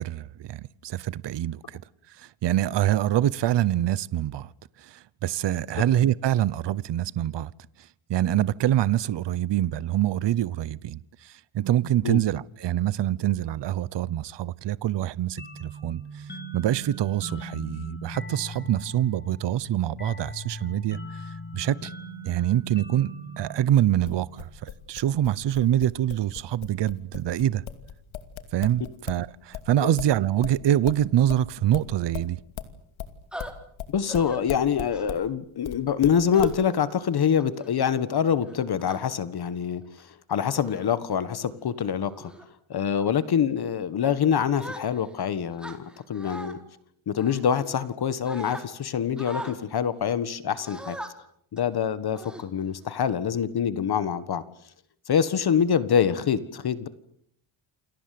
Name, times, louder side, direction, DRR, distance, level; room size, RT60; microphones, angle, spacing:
voice 1, 0.0-1.8 2.1-4.5 4.8-7.5 7.8-16.3 16.5-21.9 22.2-27.6 28.5-32.4, right 12 dB, 60° right, 1.0 m, -25 dB
sound 1, 15.4-24.7, right 1 dB, 20° left, 6.1 m, -40 dB
sound 2, 23.7-29.3 29.5-35.3 35.6-36.6, left 10 dB, 75° left, 2.7 m, -36 dB
sound 3, 33.3-33.5 34.1-34.4 34.9-35.2 36.3-36.8 37.4-37.7 38.4-39.0 39.8-40.0 40.5-40.9 41.4-41.6 42.1-42.5 43.0-43.2 44.6-45.2 45.6-46.5 47.2-48.0 48.3-48.6 49.2-49.6 50.6-51.1 51.6-51.7 52.2-52.8, equal, ahead, 4.3 m, -40 dB
voice 2, 33.9-42.3 42.7-46.6 47.1-51.0 51.5-54.4 55.1-56.9, left 8 dB, 55° left, 1.6 m, -25 dB
29.0 x 22.0 x 7.8 m
cardioid pair, 130°, 47 cm